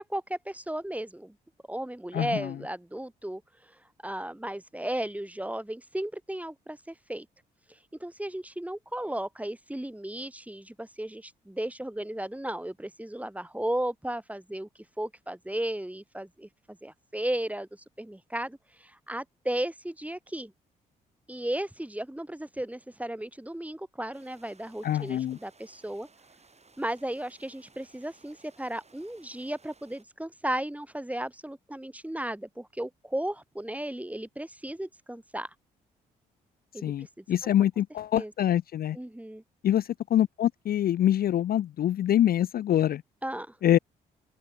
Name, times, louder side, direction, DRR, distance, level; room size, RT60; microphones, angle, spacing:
voice 1, 0.0-1.3 1.7-3.4 4.0-7.3 8.0-14.7 15.0-20.5 21.3-26.1 26.8-35.5 36.7-37.2 38.2-38.3 38.9-39.4 43.2-43.6, right 1 dB, 5° right, 2.7 m, -35 dB
voice 2, 2.1-2.5 24.8-25.4 36.8-39.0 39.6-43.0 43.6-43.8, left 11 dB, 50° left, 0.5 m, -25 dB
sound 1, 24.1-30.0, right 4 dB, 30° right, 7.3 m, -60 dB
open air
hypercardioid pair, 45°, 20 cm